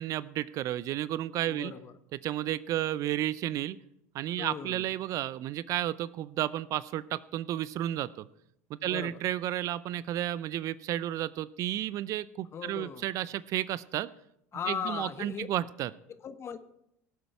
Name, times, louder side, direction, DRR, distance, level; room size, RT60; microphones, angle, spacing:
voice 1, 0.0-1.7 2.2-3.8 4.1-8.3 8.7-14.1 14.7-15.9, right 13 dB, 50° right, 19 dB, 0.5 m, -32 dB
voice 2, 1.4-1.9 4.4-4.9 8.8-9.2 12.5-13.1 14.5-15.5 16.1-16.6, left 7 dB, 35° left, 11 dB, 1.1 m, -38 dB
18.0 x 8.1 x 4.6 m, 0.77 s
hypercardioid pair, 75°, 7 cm